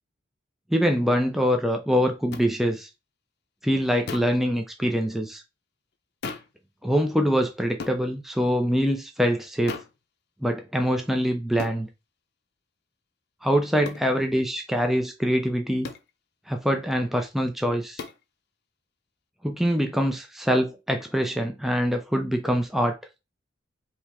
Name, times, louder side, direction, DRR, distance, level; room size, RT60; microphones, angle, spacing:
voice 1, 0.7-2.9 3.6-5.4 6.8-9.8 10.4-11.9 13.4-15.9 16.5-18.0 19.4-23.0, equal, ahead, 0.5 m, -24 dB
sound 1, 2.3-2.5 4.1-4.4 6.2-6.6 7.8-8.0 9.7-10.0 11.6-11.8 13.8-14.1 15.8-16.1 18.0-18.2, left 4 dB, 55° left, 0.6 m, -36 dB
4.4 x 3.0 x 3.4 m
head